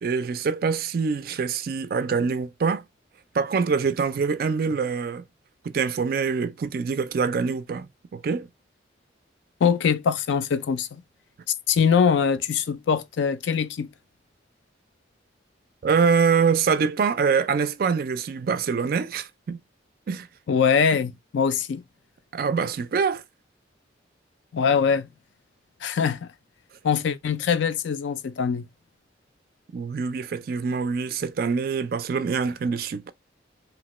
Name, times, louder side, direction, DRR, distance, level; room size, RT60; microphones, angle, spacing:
voice 1, 0.0-2.8 3.3-5.2 5.6-8.5 15.8-19.6 20.1-20.3 22.3-23.2 29.7-33.1, right 5 dB, 50° right, 0.3 m, -25 dB
voice 2, 9.6-11.0 11.7-13.9 20.5-21.8 24.5-25.1 25.8-26.3 26.8-28.7, left 6 dB, 75° left, 0.4 m, -23 dB
2.9 x 2.1 x 2.9 m
head